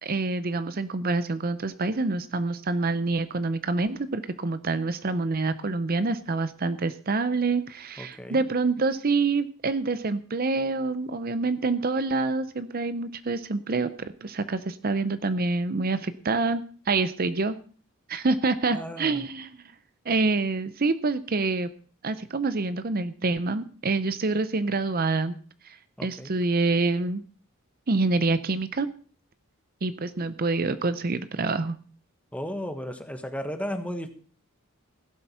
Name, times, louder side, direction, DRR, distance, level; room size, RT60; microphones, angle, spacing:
voice 1, 0.0-17.6 18.1-19.6 20.1-21.7 22.0-25.3 25.6-27.2 27.9-28.9 29.8-31.8, right 3 dB, 45° right, 13 dB, 0.7 m, -26 dB
voice 2, 8.0-8.5 18.7-19.3 26.0-26.3 32.3-34.1, equal, 5° left, 7 dB, 1.4 m, -34 dB
16.5 x 7.8 x 5.7 m, 0.42 s
head